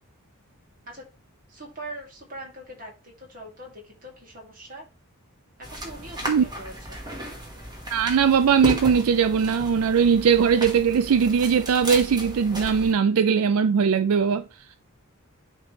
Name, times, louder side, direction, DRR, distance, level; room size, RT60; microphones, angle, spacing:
voice 1, 1.5-4.9 5.6-7.0, right 1 dB, 40° right, 2.1 m, -42 dB
sound 1, 5.6-12.9, equal, 20° right, 1.4 m, -35 dB
voice 2, 7.9-14.4, right 6 dB, 80° right, 0.4 m, -20 dB
9.6 x 3.4 x 3.1 m
head